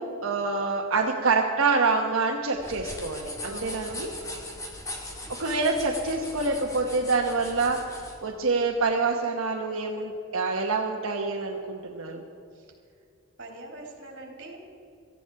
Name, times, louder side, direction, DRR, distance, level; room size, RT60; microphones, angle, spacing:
voice 1, 0.0-4.1 5.4-7.8 8.2-12.2, right 3 dB, 85° right, 0 dB, 1.1 m, -26 dB
sound 1, 2.6-8.2, left 1 dB, 15° left, 2.0 m, -39 dB
voice 2, 3.4-4.5 4.9-5.0 12.5-12.7 13.4-14.6, right 2 dB, 55° right, 1 dB, 3.4 m, -44 dB
17.5 x 14.5 x 4.7 m, 2.5 s
head